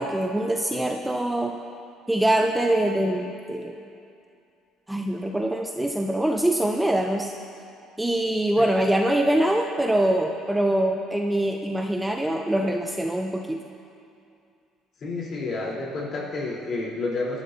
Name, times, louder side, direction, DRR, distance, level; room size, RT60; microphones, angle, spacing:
voice 1, 0.0-1.6 2.1-3.8 4.9-7.3 8.0-13.6, right 1 dB, 5° right, 2 dB, 0.6 m, -24 dB
voice 2, 15.0-17.4, left 3 dB, 40° left, -4 dB, 3.6 m, -30 dB
25.0 x 12.0 x 2.7 m, 2.5 s
cardioid pair, 140°, 0 cm